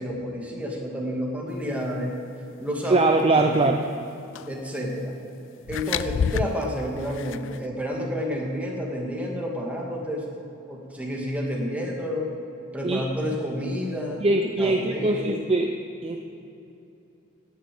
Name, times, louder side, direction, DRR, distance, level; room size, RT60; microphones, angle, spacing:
voice 1, 0.0-2.2 2.6-3.1 3.4-3.7 4.5-5.1 5.7-10.3 10.7-12.3 12.7-14.3 14.6-15.4, equal, 5° right, -2 dB, 2.3 m, -30 dB
voice 2, 2.9-3.8 12.8-13.0 14.2-16.2, right 2 dB, 30° right, 4 dB, 0.6 m, -22 dB
sound 1, 4.3-4.5 5.7-7.6, left 7 dB, 65° left, 0.4 m, -29 dB
17.5 x 7.1 x 7.8 m, 2.8 s
head